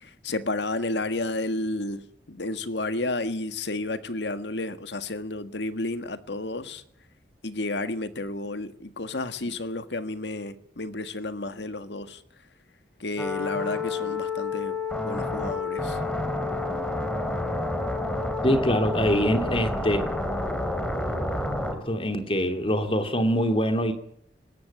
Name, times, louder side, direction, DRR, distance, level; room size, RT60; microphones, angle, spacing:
voice 1, 0.0-2.0 2.3-6.8 7.4-12.2 13.0-16.0, left 2 dB, 80° left, 1.7 m, -31 dB
sound 1, 13.2-21.7, left 2 dB, 5° left, 3.6 m, -29 dB
voice 2, 18.4-20.0 21.7-23.9, equal, 30° left, 2.7 m, -24 dB
20.0 x 16.5 x 9.2 m
head